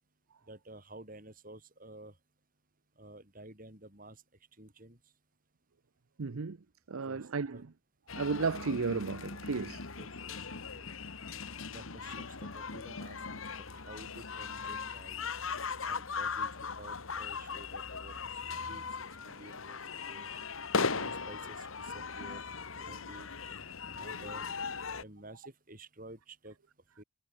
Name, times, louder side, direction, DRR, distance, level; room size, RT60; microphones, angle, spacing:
voice 1, 0.5-2.1 3.0-4.2 4.6-5.0 7.0-7.2 7.5-7.6 10.0-10.4 10.7-10.9 11.7-13.4 13.7-15.3 15.8-16.5 16.8-18.2 18.7-18.8 19.2-19.8 20.1-20.3 20.9-22.4 22.8-23.3 23.9-24.5 25.0-26.6 27.0-27.1, right 1 dB, 40° right, 5.4 m, -51 dB
voice 2, 6.2-6.6 6.9-7.7 8.1-9.9, right 4 dB, 80° right, 0.7 m, -34 dB
sound 1, 8.1-25.0, left 5 dB, 75° left, 1.7 m, -39 dB
head